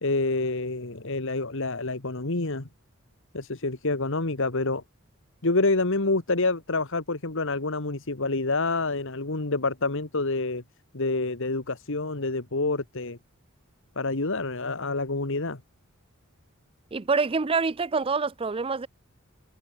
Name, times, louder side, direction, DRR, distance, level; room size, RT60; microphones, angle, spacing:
voice 1, 0.0-2.7 3.3-4.8 5.4-10.6 10.9-13.2 14.0-15.6, left 3 dB, 60° left, 1.8 m, -27 dB
voice 2, 16.9-18.9, right 4 dB, 25° right, 0.5 m, -26 dB
head